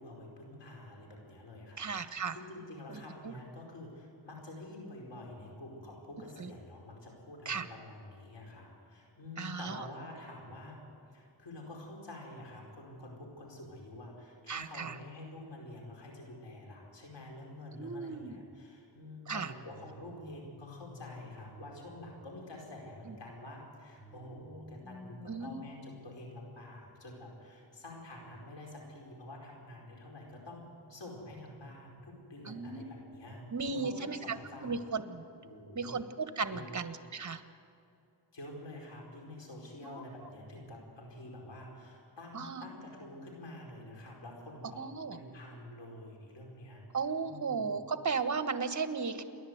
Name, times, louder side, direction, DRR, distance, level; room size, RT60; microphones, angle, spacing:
voice 1, 0.0-10.8 11.1-30.6 30.9-34.8 35.4-36.0 36.5-36.7 38.3-46.8 47.2-47.7, left 1 dB, 90° left, -1 dB, 4.8 m, -48 dB
voice 2, 1.8-2.4 2.9-3.0 3.2-3.3 6.4-6.5 7.4-7.6 9.4-9.9 14.5-14.9 17.7-18.3 19.3-19.5 23.1-23.2 25.3-25.6 32.4-32.8 33.5-34.2 34.6-35.2 35.7-37.4 39.8-40.0 42.3-42.7 44.8-45.2 46.9-49.2, right 5 dB, 45° right, 9 dB, 1.4 m, -35 dB
sound 1, 19.7-22.8 24.0-26.9, left 3 dB, 5° left, 6.7 m, -53 dB
29.0 x 11.0 x 8.0 m, 2.6 s
wide cardioid pair, 70°, 42 cm